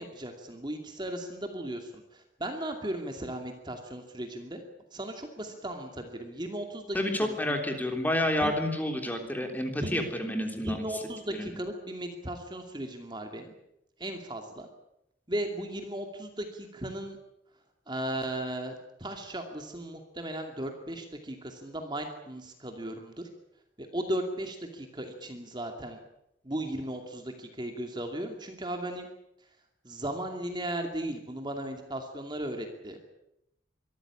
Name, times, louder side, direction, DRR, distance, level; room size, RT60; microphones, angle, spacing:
voice 1, 0.0-4.6 4.9-7.3 8.4-8.5 9.8-10.1 10.6-13.5 14.0-14.7 15.3-17.2 17.9-23.2 23.8-26.0 26.4-29.1 29.8-33.0, right 1 dB, 25° right, 4 dB, 2.5 m, -36 dB
voice 2, 6.9-10.8 11.3-11.5, left 1 dB, 10° left, 4 dB, 3.4 m, -29 dB
24.0 x 14.0 x 10.0 m, 0.83 s
head